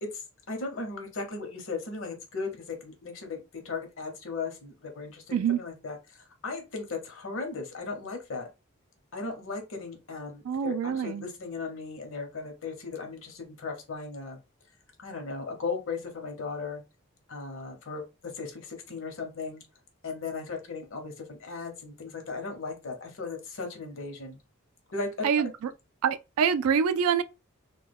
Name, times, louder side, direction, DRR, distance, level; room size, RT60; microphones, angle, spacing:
voice 1, 0.0-8.5 9.1-14.4 15.0-16.8 17.3-19.6 20.0-24.4 24.9-25.5, left 4 dB, 65° left, 0.7 m, -37 dB
voice 2, 10.4-11.3 25.2-25.7 26.0-27.2, right 7 dB, 85° right, 0.3 m, -26 dB
2.2 x 2.2 x 3.3 m
head